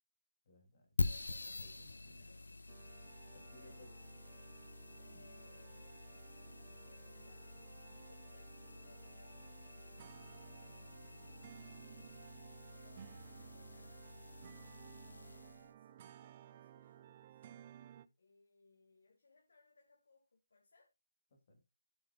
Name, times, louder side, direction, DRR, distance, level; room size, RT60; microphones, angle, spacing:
voice 1, 0.4-1.0 1.6-2.3 3.3-3.9 5.1-5.3 21.3-21.6, left 1 dB, 35° left, 2.7 m, -62 dB
sound 1, 1.0-15.7, left 2 dB, 90° left, 1.0 m, -46 dB
voice 2, 2.0-2.6 3.1-12.1 12.7-17.5 18.2-20.9, left 3 dB, 60° left, 2.3 m, -69 dB
sound 2, 2.7-18.1, right 10 dB, 25° right, 0.5 m, -58 dB
14.5 x 6.3 x 2.4 m
hypercardioid pair, 170°, 0 cm